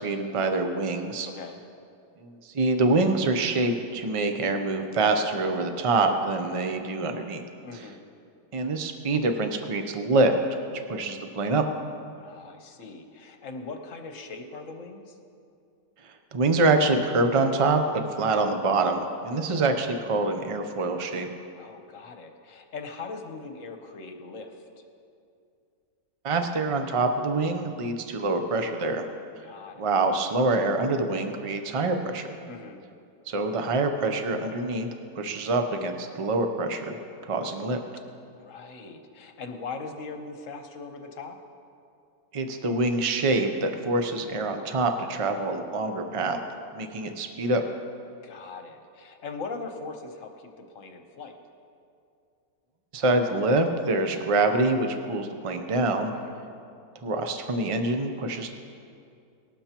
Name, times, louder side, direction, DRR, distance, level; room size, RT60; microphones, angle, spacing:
voice 1, 0.0-1.3 2.2-7.4 8.5-10.4 10.9-11.6 16.3-21.3 26.2-29.0 29.8-32.3 33.3-34.9 35.2-37.0 37.3-37.8 42.3-46.4 46.7-47.6 52.9-56.1 57.0-58.5, right 2 dB, 60° right, 6 dB, 0.3 m, -25 dB
voice 2, 1.3-1.6 7.6-8.0 12.2-15.1 21.6-24.6 29.4-29.9 32.5-32.8 38.3-41.4 48.2-51.4 56.1-56.4, left 4 dB, 60° left, 5 dB, 1.2 m, -40 dB
19.0 x 12.5 x 2.9 m, 2.4 s
omnidirectional pair, 1.6 m